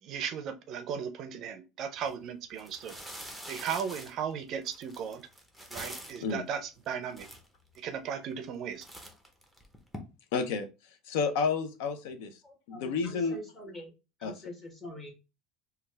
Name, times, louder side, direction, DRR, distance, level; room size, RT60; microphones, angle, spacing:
voice 1, 0.0-3.0 3.5-5.3 5.7-7.3 7.7-8.9, right 7 dB, 50° right, 0.4 m, -36 dB
sound 1, 2.0-2.1 2.6-6.3 6.9-7.0 7.1-7.8 8.3-8.6 8.8-10.0, equal, ahead, 0.6 m, -45 dB
voice 2, 10.3-10.7 11.1-12.3 12.7-13.4 14.2-14.3, left 5 dB, 80° left, 0.5 m, -30 dB
voice 3, 12.4-13.9 14.2-15.1, left 1 dB, 20° left, 1.3 m, -45 dB
3.3 x 2.3 x 3.2 m
supercardioid pair, 130°, 0 cm